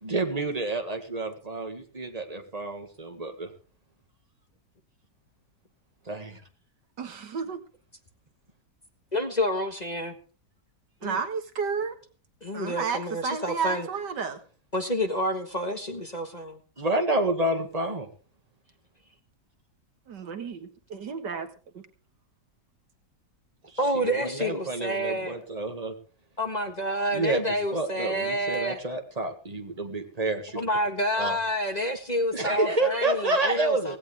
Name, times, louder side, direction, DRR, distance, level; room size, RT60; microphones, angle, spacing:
voice 1, 0.0-3.5 6.1-6.4 16.8-18.1 23.9-25.9 27.1-30.6 31.2-31.4 32.3-34.0, right 2 dB, 20° right, 5 dB, 2.0 m, -29 dB
voice 2, 7.0-7.6 11.0-12.0 12.5-14.4 20.1-21.5 21.7-21.8, right 5 dB, 80° right, 7 dB, 2.3 m, -32 dB
voice 3, 9.1-10.2 11.0-11.2 12.4-13.9 14.7-16.6 23.8-25.4 26.4-28.8 30.5-34.0, equal, 25° left, 5 dB, 1.6 m, -29 dB
17.0 x 16.5 x 3.5 m, 0.37 s
omnidirectional pair, 1.8 m